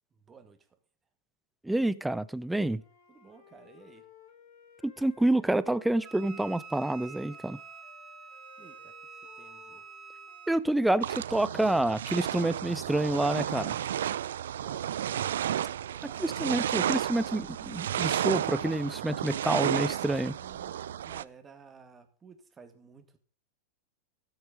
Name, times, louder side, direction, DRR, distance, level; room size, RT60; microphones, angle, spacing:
voice 1, 0.1-0.7 3.1-4.1 8.6-9.8 14.6-14.9 15.9-16.3 20.4-23.2, right 5 dB, 20° right, 2.1 m, -54 dB
voice 2, 1.6-2.8 4.8-7.6 10.5-13.8 16.0-20.3, right 1 dB, 5° right, 0.6 m, -28 dB
Wind instrument woodwind instrument, 2.8-6.6 6.8-10.7, left 8 dB, 60° left, 2.8 m, -58 dB
Wind instrument woodwind instrument 2, 6.0-10.6, right 5 dB, 45° right, 1.7 m, -47 dB
sound 1, 11.0-21.2, right 10 dB, 80° right, 0.4 m, -32 dB
13.5 x 8.1 x 5.1 m
hypercardioid pair, 115°, 0 cm